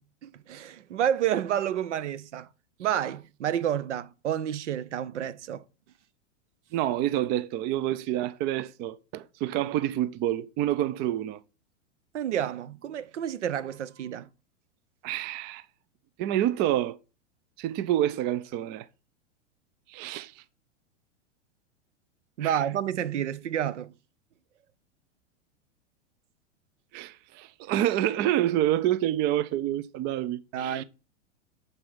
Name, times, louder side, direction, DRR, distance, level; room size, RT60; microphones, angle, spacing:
voice 1, 0.2-2.5 2.8-5.6 12.1-14.3 22.4-23.9 30.5-30.8, right 10 dB, 75° right, 0.7 m, -29 dB
voice 2, 6.7-11.4 15.0-15.6 16.2-17.0 17.6-18.9 19.9-20.4 22.4-22.6 26.9-30.8, right 12 dB, 30° right, 0.4 m, -28 dB
6.7 x 5.5 x 6.0 m
hypercardioid pair, 105°, 36 cm